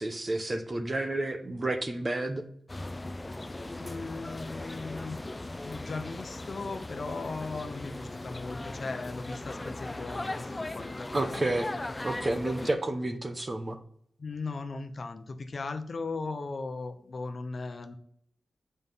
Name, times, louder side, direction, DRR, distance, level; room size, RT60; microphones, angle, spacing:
voice 1, 0.0-2.4 11.1-11.7 12.0-13.8, right 2 dB, 25° right, 8 dB, 0.9 m, -30 dB
sound 1, 2.7-12.7, left 2 dB, 20° left, 0.5 m, -38 dB
voice 2, 3.8-5.2 5.6-11.4 14.2-18.0, left 3 dB, 45° left, 8 dB, 0.8 m, -38 dB
8.0 x 5.5 x 5.5 m, 0.66 s
wide cardioid pair, 125°, 0 cm